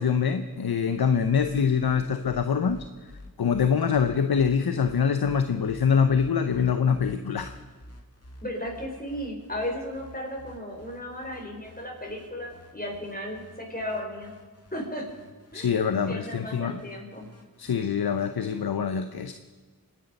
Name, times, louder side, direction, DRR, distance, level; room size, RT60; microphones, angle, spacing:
voice 1, 0.0-2.9 3.4-7.6 15.5-16.8 17.6-19.3, left 6 dB, 85° left, 9 dB, 0.7 m, -24 dB
sound 1, 1.1-18.6, left 1 dB, 40° left, 2.4 m, -49 dB
voice 2, 8.4-14.3 14.7-15.1 15.5-15.8 16.1-17.3, left 1 dB, 25° left, 0 dB, 4.9 m, -35 dB
26.0 x 10.0 x 5.3 m, 1.4 s
wide cardioid pair, 40°, 36 cm